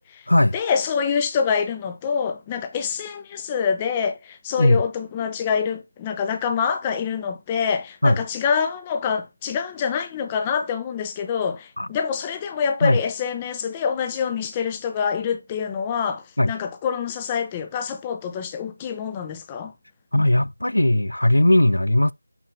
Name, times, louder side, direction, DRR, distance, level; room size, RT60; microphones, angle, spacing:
voice 1, 0.5-19.7, left 6 dB, 10° left, 0.5 m, -26 dB
voice 2, 20.1-22.1, left 1 dB, 75° left, 0.4 m, -18 dB
6.7 x 6.0 x 3.4 m
figure-of-eight pair, 170°, 0 cm